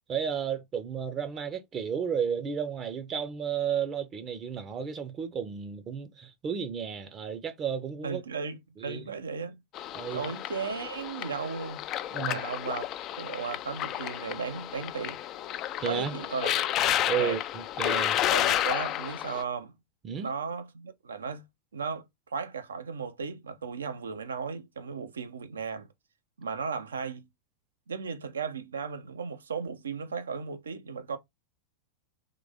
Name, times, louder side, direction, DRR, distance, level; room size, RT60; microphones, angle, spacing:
voice 1, 0.1-8.2 8.8-9.0 9.9-10.3 12.1-12.4 15.8-16.1 17.0-18.2 20.0-20.3, right 7 dB, 25° right, 0.6 m, -33 dB
voice 2, 8.0-9.6 10.1-11.8 12.2-12.9 13.2-15.2 15.8-16.6 17.2-17.4 18.3-19.7 20.2-21.4 21.7-22.0 22.3-25.9 26.4-27.3 27.9-31.2, right 5 dB, 70° right, 0.6 m, -35 dB
sound 1, 9.7-19.4, left 12 dB, 35° left, 0.3 m, -31 dB
3.7 x 3.3 x 3.4 m
figure-of-eight pair, 90°, 0 cm